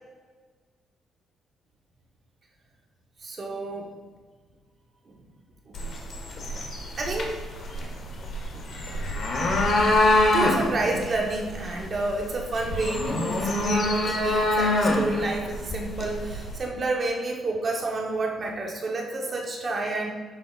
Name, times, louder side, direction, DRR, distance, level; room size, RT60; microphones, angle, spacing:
voice 1, 3.2-3.9 5.1-5.2 5.7-5.8 6.4-6.5 7.0-7.4 7.8-8.0 8.5-8.7 9.2-9.4 10.3-20.1, right 2 dB, 45° right, 0 dB, 1.1 m, -30 dB
sound 1, 5.7-16.6, left 1 dB, 55° left, 1.2 m, -26 dB
10.5 x 3.8 x 2.5 m, 1.5 s
cardioid pair, 90°, 0 cm